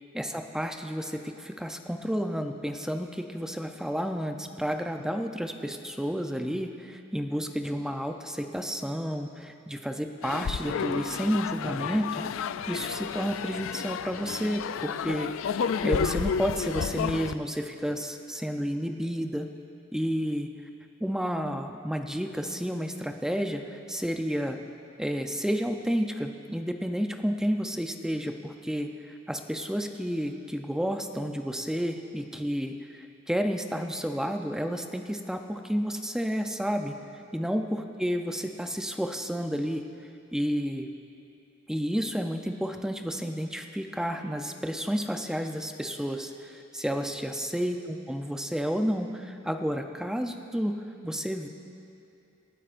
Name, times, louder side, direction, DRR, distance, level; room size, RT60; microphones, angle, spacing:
voice 1, 0.1-12.2 12.7-15.3 15.8-19.5 19.9-20.5 21.0-24.6 25.0-37.0 37.3-39.8 40.3-40.9 41.7-50.8 51.0-51.5, equal, 5° right, 5 dB, 0.5 m, -31 dB
sound 1, 10.2-17.3, left 7 dB, 70° left, 0.3 m, -31 dB
26.0 x 9.5 x 2.5 m, 2.8 s
head